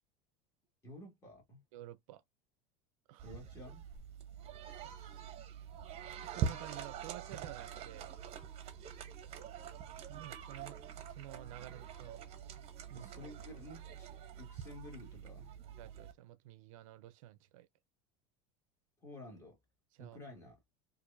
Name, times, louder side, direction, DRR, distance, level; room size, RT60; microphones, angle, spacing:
voice 1, 0.8-1.6 3.2-3.8 12.9-14.1 14.4-15.5 19.0-19.6 20.0-20.6, left 2 dB, 15° left, 1.9 m, -51 dB
voice 2, 1.7-2.2 3.1-3.3 4.8-5.3 6.2-8.1 10.1-10.8 11.1-12.2 12.9-13.3 15.8-17.7 20.0-20.3, right 14 dB, 85° right, 0.5 m, -51 dB
sound 1, 3.2-16.1, right 7 dB, 40° right, 0.8 m, -44 dB
4.5 x 2.6 x 2.5 m
supercardioid pair, 135°, 17 cm